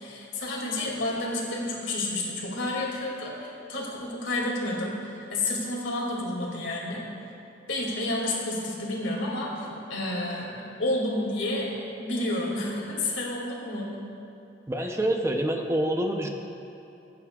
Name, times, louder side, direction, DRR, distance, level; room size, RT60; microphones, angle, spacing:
voice 1, 0.0-7.0 7.7-10.5 10.8-11.7 12.0-13.9, left 1 dB, 90° left, -3 dB, 2.5 m, -30 dB
voice 2, 14.7-16.3, right 1 dB, 15° right, 3 dB, 0.6 m, -26 dB
19.5 x 9.4 x 2.4 m, 2.7 s
head